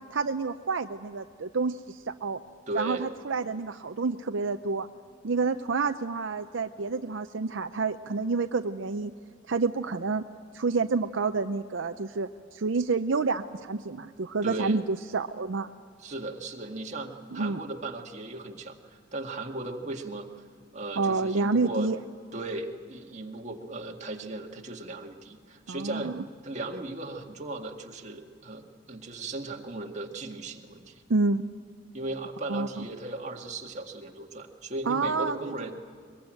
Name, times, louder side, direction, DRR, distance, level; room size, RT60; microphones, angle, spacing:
voice 1, 0.1-2.4 2.7-4.9 5.2-9.1 9.5-10.2 10.5-15.7 17.3-17.6 21.0-22.0 25.7-26.2 31.1-31.4 32.5-32.8 34.9-35.7, right 4 dB, 75° right, 8 dB, 0.6 m, -29 dB
voice 2, 2.7-3.1 14.4-14.8 16.0-20.3 20.7-21.9 22.3-26.1 26.4-31.0 31.9-35.7, right 2 dB, 40° right, 2 dB, 1.9 m, -37 dB
22.0 x 22.0 x 9.0 m, 2.2 s
head